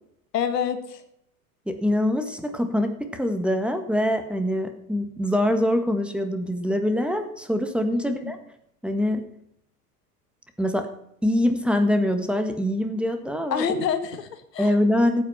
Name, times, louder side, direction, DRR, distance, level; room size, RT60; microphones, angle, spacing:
voice 1, 0.3-1.0 8.0-8.2 13.5-14.7, left 7 dB, 85° left, 9 dB, 1.8 m, -27 dB
voice 2, 1.7-8.4 8.8-9.2 10.6-10.9 11.2-13.6 14.6-15.2, left 1 dB, ahead, 7 dB, 1.7 m, -24 dB
14.5 x 8.7 x 5.8 m, 0.76 s
hypercardioid pair, 105°, 47 cm